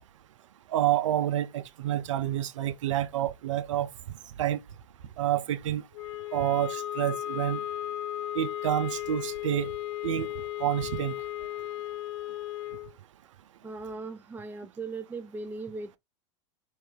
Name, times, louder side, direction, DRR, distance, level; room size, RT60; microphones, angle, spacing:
voice 1, 0.7-3.9 4.4-4.6 5.2-5.8 6.3-7.6 8.3-9.7 10.0-10.3 10.6-11.2, right 12 dB, 85° right, 0.6 m, -28 dB
sound 1, 5.9-12.9, left 13 dB, 70° left, 0.5 m, -35 dB
voice 2, 13.6-16.0, right 3 dB, 10° right, 0.5 m, -38 dB
4.6 x 3.3 x 3.2 m
hypercardioid pair, 110°, 16 cm